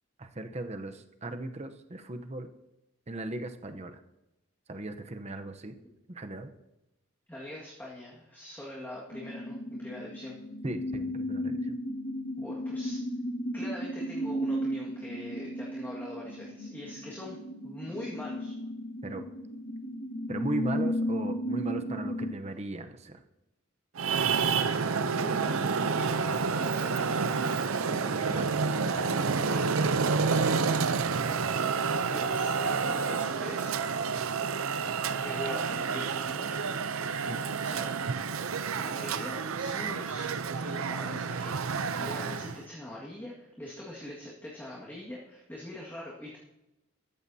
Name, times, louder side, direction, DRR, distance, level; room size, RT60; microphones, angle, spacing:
voice 1, 0.2-2.5 3.1-4.0 4.7-5.8 6.1-6.5 10.6-11.8 19.0-19.2 20.3-23.2 27.9-30.4 37.3-37.4, right 2 dB, 30° right, 7 dB, 0.8 m, -38 dB
voice 2, 7.3-10.4 12.4-13.0 13.5-17.4 17.6-18.5 25.0-27.3 31.9-33.8 35.2-36.7 37.6-37.8 38.8-46.4, left 1 dB, 10° left, -5 dB, 1.9 m, -43 dB
sound 1, 9.1-22.3, equal, 45° left, 1.7 m, -34 dB
Traffic noise roadway noise, 23.9-42.6, right 5 dB, 80° right, 0.6 m, -29 dB
14.0 x 13.5 x 2.8 m, 0.91 s
head